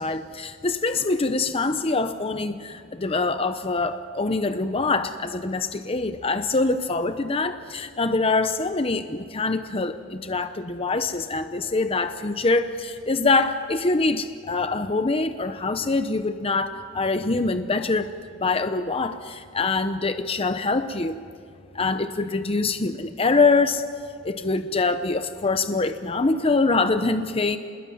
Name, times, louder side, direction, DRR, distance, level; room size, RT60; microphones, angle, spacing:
voice 1, 0.0-18.1 18.4-21.2 21.7-23.8 24.2-27.6, left 3 dB, 30° left, 9 dB, 0.8 m, -24 dB
27.5 x 21.0 x 9.5 m, 2.3 s
head